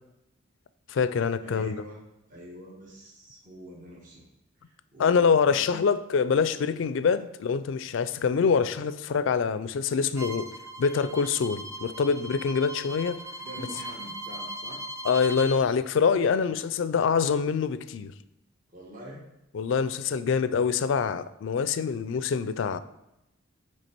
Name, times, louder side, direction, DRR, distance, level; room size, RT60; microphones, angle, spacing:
voice 1, 0.9-1.8 5.0-13.2 15.0-18.1 19.5-22.8, left 6 dB, 65° left, 0.3 m, -25 dB
voice 2, 1.4-2.0 2.3-4.2 4.6-5.8 13.4-14.8 16.5-16.6 18.7-19.2, right 1 dB, 40° right, 1.2 m, -45 dB
Bowed string instrument, 10.2-15.6, right 1 dB, 15° right, 0.4 m, -39 dB
8.2 x 3.3 x 4.4 m
head